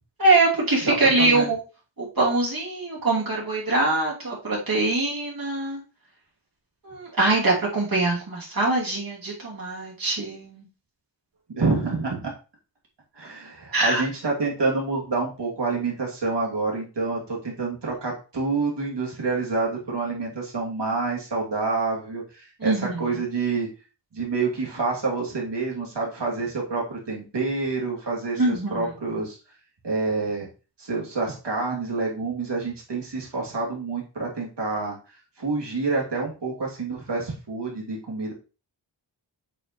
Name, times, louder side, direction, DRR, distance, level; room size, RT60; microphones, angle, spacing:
voice 1, 0.2-1.6 2.0-5.8 6.8-10.6 13.7-14.0 22.6-23.0 28.4-28.7, right 2 dB, 50° right, -4 dB, 2.8 m, -23 dB
voice 2, 0.8-1.5 11.5-12.3 13.1-23.7 24.1-29.4 29.8-30.5 30.8-35.0 35.4-38.3, right 3 dB, 65° right, -2 dB, 2.7 m, -27 dB
8.4 x 5.1 x 3.1 m, 0.33 s
wide cardioid pair, 95°, 45 cm